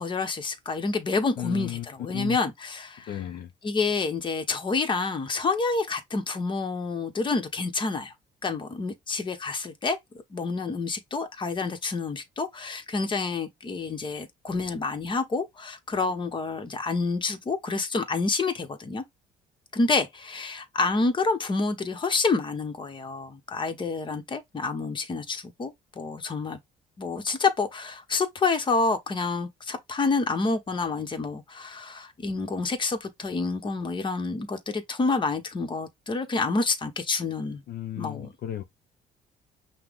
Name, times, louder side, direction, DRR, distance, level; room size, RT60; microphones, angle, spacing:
voice 1, 0.0-3.1 3.6-8.1 8.4-10.0 10.3-19.0 19.7-26.6 27.0-37.6 38.0-38.3, left 3 dB, 30° left, 1.1 m, -28 dB
voice 2, 1.4-1.9 2.1-2.4 3.1-3.5 37.7-38.6, left 12 dB, 60° left, 0.8 m, -34 dB
5.8 x 2.3 x 3.5 m
cardioid pair, 110°, 17 cm